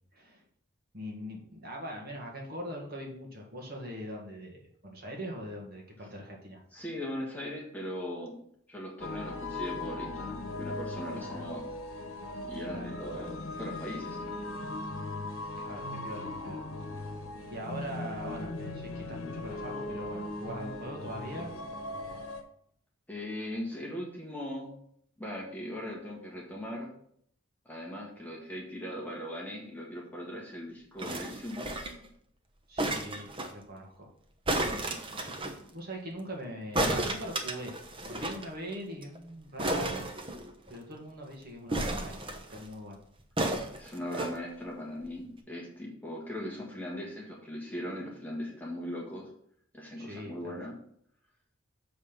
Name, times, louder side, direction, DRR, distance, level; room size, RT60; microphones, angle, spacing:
voice 1, 0.1-0.4 0.9-6.6 11.1-11.5 12.6-13.3 15.5-16.6 16.9-17.2 17.5-21.5 21.8-22.2 32.7-34.1 35.7-40.1 40.7-43.0 50.0-50.6, equal, 45° right, 0 dB, 1.9 m, -42 dB
voice 2, 6.7-8.4 8.7-11.6 12.4-14.3 23.1-24.7 25.2-26.9 27.6-31.6 43.8-49.3 49.7-50.8, left 1 dB, 10° left, -2 dB, 1.7 m, -39 dB
sound 1, 9.0-22.4, left 2 dB, 80° left, 1.2 m, -39 dB
sound 2, 31.0-32.1 32.8-33.5 34.4-35.6 36.7-38.4 38.7-38.8 39.0-39.2 39.6-40.8 41.7-42.6 43.4-44.3 45.1-45.2, right 1 dB, 25° right, 0.9 m, -32 dB
7.0 x 5.2 x 5.8 m, 0.65 s
head